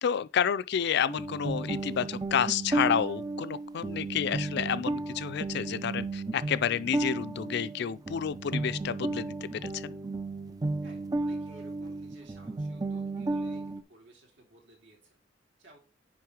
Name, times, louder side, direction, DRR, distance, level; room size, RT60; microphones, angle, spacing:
voice 1, 0.0-10.0, left 8 dB, 60° left, 0.4 m, -30 dB
sound 1, 1.1-13.8, right 2 dB, 20° right, 0.4 m, -34 dB
voice 2, 10.8-15.2 15.6-15.8, right 1 dB, 65° right, 3.1 m, -56 dB
9.4 x 3.6 x 4.8 m
head